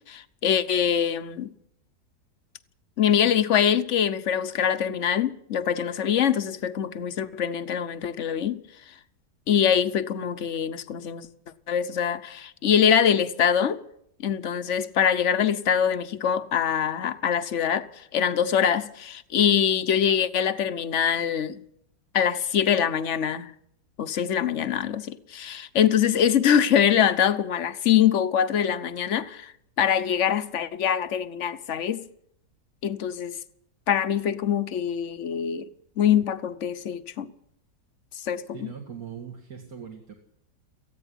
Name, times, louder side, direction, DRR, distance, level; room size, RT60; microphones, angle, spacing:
voice 1, 0.1-1.5 3.0-8.6 9.5-11.3 11.7-13.8 14.2-21.6 22.1-23.5 24.0-29.5 29.8-32.0 32.8-33.4 33.9-35.7 36.0-37.3 38.1-38.7, left 8 dB, 50° left, 1.2 m, -24 dB
voice 2, 38.5-40.1, right 7 dB, 55° right, 2.5 m, -40 dB
18.0 x 15.0 x 10.0 m
omnidirectional pair, 1.9 m